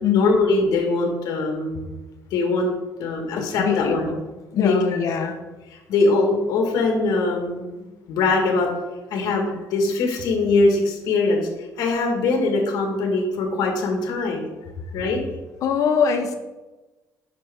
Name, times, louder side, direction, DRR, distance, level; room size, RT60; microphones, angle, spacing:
voice 1, 0.1-1.8 2.3-2.7 3.0-4.1 4.5-4.7 5.2-5.3 5.9-7.6 8.1-8.7 9.1-11.5 11.8-14.4 14.9-15.2, left 3 dB, 70° left, 2 dB, 1.6 m, -22 dB
voice 2, 3.4-4.2 4.6-5.4 15.6-16.3, left 7 dB, 55° left, 6 dB, 0.9 m, -22 dB
9.0 x 5.6 x 3.5 m, 1.1 s
cardioid pair, 160°, 7 cm